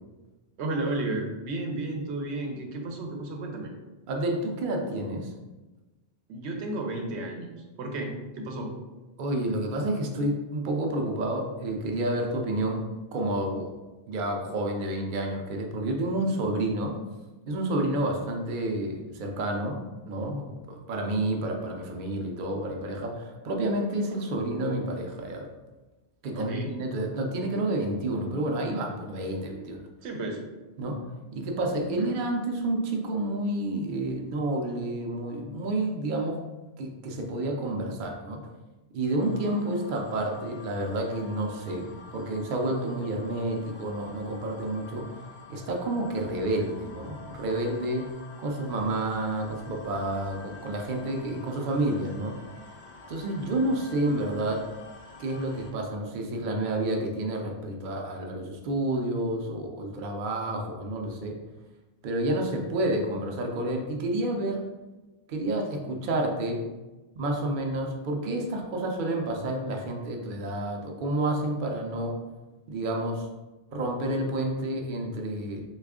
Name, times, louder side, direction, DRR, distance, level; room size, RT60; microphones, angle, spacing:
voice 1, 0.6-3.7 6.3-7.5 7.8-8.7 26.3-26.8 30.0-30.4, right 2 dB, 90° right, 2 dB, 0.9 m, -32 dB
voice 2, 4.1-5.3 9.2-13.7 14.1-16.9 17.5-19.8 20.1-25.5 26.2-29.9 30.8-31.0 31.3-36.4 36.8-38.4 38.9-41.9 42.1-45.2 45.5-48.1 48.4-52.4 53.1-54.6 55.2-61.4 62.0-64.6 65.3-66.6 67.2-72.2 72.7-73.3 73.7-75.6, right 1 dB, 60° right, 2 dB, 0.6 m, -29 dB
sound 1, 39.2-55.7, left 3 dB, 85° left, 0.8 m, -48 dB
3.3 x 2.3 x 3.5 m, 1.1 s
omnidirectional pair, 1.1 m